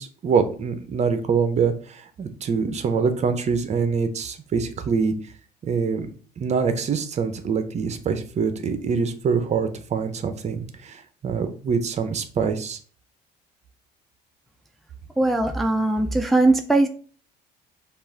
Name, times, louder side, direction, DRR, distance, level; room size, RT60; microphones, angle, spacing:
voice 1, 0.0-5.1 5.6-6.1 6.4-12.8, right 5 dB, 40° right, 9 dB, 0.7 m, -24 dB
voice 2, 15.2-16.9, right 2 dB, ahead, 4 dB, 0.4 m, -20 dB
5.4 x 2.5 x 3.9 m, 0.43 s
cardioid pair, 110°, 17 cm